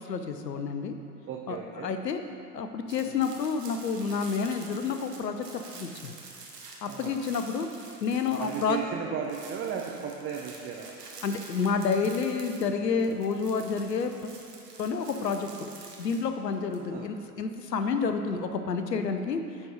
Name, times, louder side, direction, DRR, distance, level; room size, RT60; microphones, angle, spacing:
voice 1, 0.1-0.9 1.5-1.6 1.8-2.2 2.5-6.1 6.8-7.7 8.0-8.8 11.2-14.3 14.8-15.5 16.0-19.4, left 5 dB, 85° left, 7 dB, 0.7 m, -29 dB
voice 2, 1.3-1.9 3.0-3.2 6.9-7.2 8.4-10.9 16.8-17.1, right 7 dB, 25° right, -1 dB, 0.7 m, -35 dB
sound 1, 2.9-8.9 9.2-16.8, right 4 dB, 80° right, 1.3 m, -48 dB
9.7 x 4.2 x 5.1 m, 2.7 s
figure-of-eight pair, 85°, 48 cm